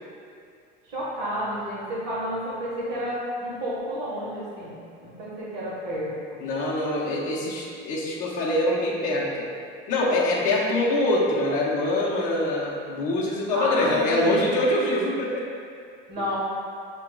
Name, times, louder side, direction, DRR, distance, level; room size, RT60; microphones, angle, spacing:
voice 1, 0.9-6.4 13.5-14.5 16.1-16.4, equal, 50° right, -8 dB, 1.4 m, -31 dB
voice 2, 6.4-9.5 9.9-15.5, left 1 dB, 40° left, -6 dB, 0.9 m, -24 dB
7.3 x 3.0 x 2.3 m, 2.3 s
cardioid pair, 175°, 21 cm